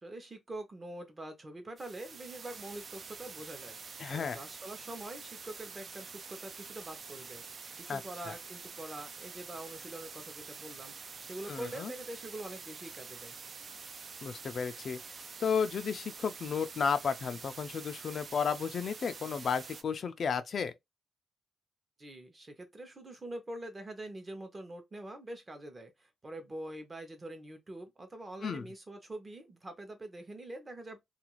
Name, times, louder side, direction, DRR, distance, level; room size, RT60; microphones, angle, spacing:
voice 1, 0.0-13.4 22.0-31.0, right 1 dB, 25° right, 0.7 m, -45 dB
sound 1, 1.8-19.8, right 5 dB, 45° right, 0.3 m, -47 dB
voice 2, 4.0-4.4 7.9-8.0 11.5-11.9 14.2-15.0 15.4-20.7 28.4-28.7, left 6 dB, 55° left, 0.3 m, -33 dB
2.4 x 2.3 x 3.0 m
wide cardioid pair, 130°, 0 cm